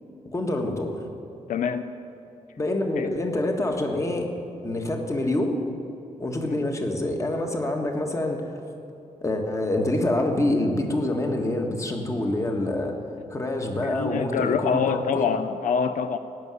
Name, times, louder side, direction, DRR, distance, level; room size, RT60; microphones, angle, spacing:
voice 1, 0.3-1.0 2.6-4.3 4.6-5.6 6.2-8.6 9.2-12.9 13.3-15.2, left 1 dB, 20° left, 3 dB, 1.5 m, -26 dB
voice 2, 1.5-1.9 3.0-3.1 13.8-16.2, left 6 dB, 75° left, 10 dB, 0.5 m, -25 dB
17.5 x 6.4 x 9.5 m, 2.7 s
wide cardioid pair, 135°, 14 cm